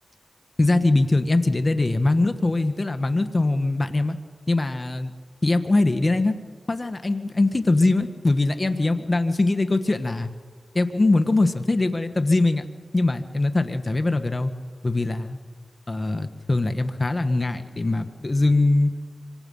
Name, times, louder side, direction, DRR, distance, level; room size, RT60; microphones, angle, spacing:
voice 1, 0.6-4.2 4.5-5.1 5.4-6.4 6.7-10.3 10.7-12.6 12.9-14.5 14.8-15.4 15.9-18.9, left 2 dB, 40° left, 8 dB, 1.9 m, -22 dB
25.5 x 25.0 x 5.8 m, 1.6 s
cardioid pair, 40°, 0 cm